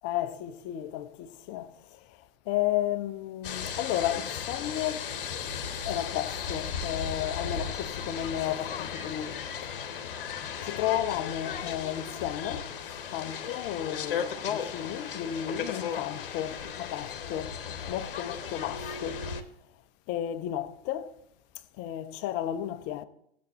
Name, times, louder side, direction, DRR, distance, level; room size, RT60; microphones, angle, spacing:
voice 1, 0.0-5.1 5.8-9.9 10.6-12.8 13.1-17.6 17.9-19.3 20.1-21.1 21.8-23.0, left 12 dB, 40° left, 0.8 m, -33 dB
sound 1, 3.4-19.4, left 7 dB, 65° left, 1.2 m, -36 dB
17.5 x 7.3 x 4.4 m
figure-of-eight pair, 95°, 29 cm